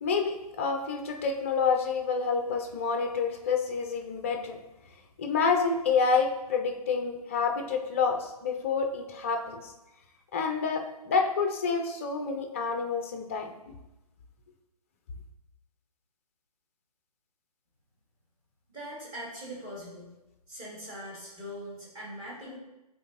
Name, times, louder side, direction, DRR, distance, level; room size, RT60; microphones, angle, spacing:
voice 1, 0.0-4.6 5.2-9.6 10.3-13.5, left 5 dB, 20° left, 4 dB, 0.5 m, -28 dB
voice 2, 18.7-20.1 20.5-22.6, equal, 20° right, -6 dB, 2.0 m, -41 dB
8.2 x 4.0 x 2.9 m, 0.97 s
figure-of-eight pair, 135°, 20 cm